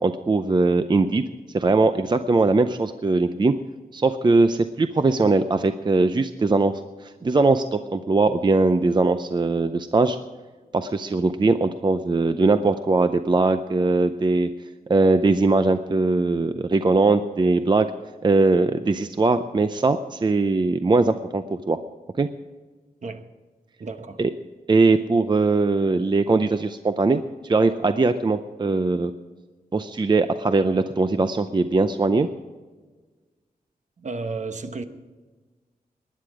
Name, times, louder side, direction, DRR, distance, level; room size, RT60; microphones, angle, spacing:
voice 1, 0.0-1.2 1.5-3.5 3.9-6.7 7.0-10.2 10.7-14.5 14.9-17.9 18.2-21.8 22.2-22.3 24.2-24.3 24.7-29.1 29.7-32.3, right 3 dB, 30° right, 0.5 m, -20 dB
voice 2, 23.8-24.2 34.0-34.8, right 3 dB, 50° right, 1.0 m, -32 dB
19.5 x 10.5 x 4.9 m
wide cardioid pair, 140°, 16 cm